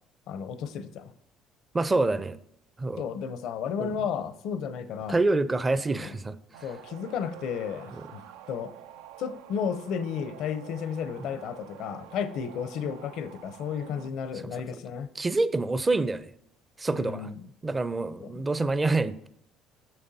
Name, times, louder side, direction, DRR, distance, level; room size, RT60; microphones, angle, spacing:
voice 1, 0.3-1.1 3.0-5.2 6.0-6.1 6.6-8.7 9.2-15.1 16.9-17.4 18.2-18.3, left 7 dB, 70° left, 0.5 m, -33 dB
voice 2, 1.7-2.4 2.8-3.0 3.8-3.9 5.1-6.4 8.0-8.1 13.9-14.0 14.4-14.6 15.2-16.3 16.8-17.3 17.6-19.3, right 2 dB, 20° right, 0.5 m, -26 dB
sound 1, 6.5-14.1, right 11 dB, 85° right, 0.3 m, -48 dB
8.7 x 6.7 x 2.7 m
supercardioid pair, 80°, 0 cm